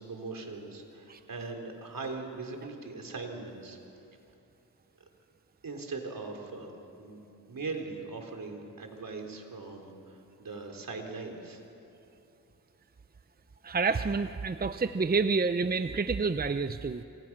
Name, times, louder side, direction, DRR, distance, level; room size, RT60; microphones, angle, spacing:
voice 1, 0.0-3.8 5.6-6.7 7.0-7.2 7.5-11.6, right 3 dB, 65° right, 3 dB, 3.9 m, -40 dB
voice 2, 13.6-17.0, right 4 dB, 25° right, 10 dB, 0.7 m, -28 dB
27.5 x 26.0 x 6.1 m, 2.8 s
cardioid pair, 60°, 36 cm